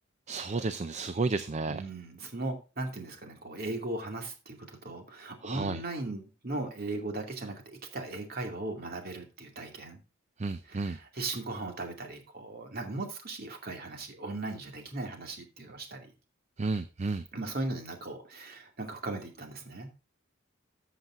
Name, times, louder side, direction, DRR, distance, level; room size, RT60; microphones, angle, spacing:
voice 1, 0.3-1.8 5.4-5.8 10.4-11.0 16.6-17.2, right 3 dB, 35° right, 12 dB, 0.5 m, -32 dB
voice 2, 1.7-7.6 7.9-10.0 10.7-16.1 17.3-19.9, right 2 dB, 50° right, 3 dB, 2.5 m, -38 dB
13.5 x 7.6 x 2.6 m, 0.31 s
head